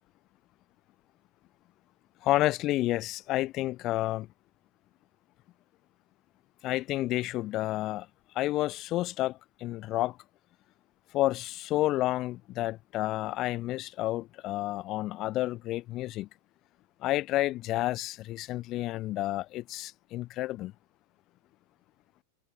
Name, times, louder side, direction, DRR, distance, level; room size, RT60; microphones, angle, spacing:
voice 1, 2.2-4.3 6.6-8.1 8.3-10.2 11.1-16.3 17.0-20.7, left 16 dB, 35° left, 4.1 m, -30 dB
figure-of-eight pair, 90°, 0 cm